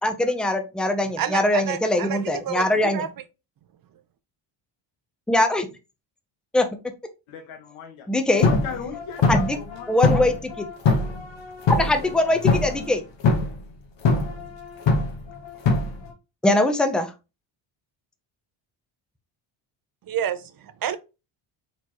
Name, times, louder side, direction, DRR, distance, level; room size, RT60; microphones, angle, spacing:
voice 1, 0.0-3.0 5.3-5.7 6.5-6.7 8.1-8.5 9.3-9.6 9.9-10.7 11.8-13.0 16.4-17.1, left 1 dB, ahead, 0.7 m, -22 dB
voice 2, 1.2-2.2 2.5-2.6 2.9-3.1 20.1-21.0, right 9 dB, 45° right, 0.6 m, -28 dB
voice 3, 7.3-8.1 8.4-9.9, left 7 dB, 80° left, 1.6 m, -36 dB
sound 1, 8.3-12.9 13.2-13.6 14.0-16.1, left 3 dB, 60° left, 1.4 m, -23 dB
4.4 x 4.0 x 3.0 m
cardioid pair, 110°, 49 cm